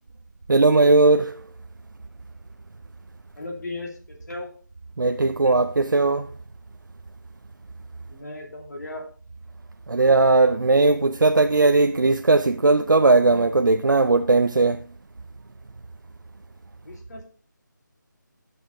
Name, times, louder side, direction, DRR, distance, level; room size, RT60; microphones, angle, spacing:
voice 1, 0.5-1.3 5.0-6.3 9.9-14.8, right 3 dB, 75° right, 0.5 m, -18 dB
voice 2, 3.4-4.5 8.1-9.1 16.8-17.2, left 2 dB, 55° left, 2.5 m, -36 dB
13.0 x 6.3 x 3.0 m
figure-of-eight pair, 160°, 11 cm